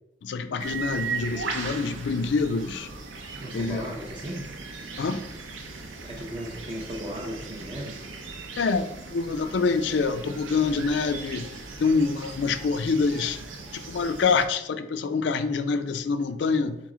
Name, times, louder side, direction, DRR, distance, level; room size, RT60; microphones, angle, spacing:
voice 1, 0.2-2.9 3.5-3.8 5.0-5.2 8.6-11.5 11.8-13.4 13.7-16.8, left 4 dB, 65° left, 0.3 m, -26 dB
sound 1, 0.6-14.5, right 4 dB, 85° right, 0.6 m, -38 dB
voice 2, 3.4-4.5 6.0-8.0, equal, 25° right, 0.5 m, -36 dB
3.9 x 3.0 x 3.6 m
head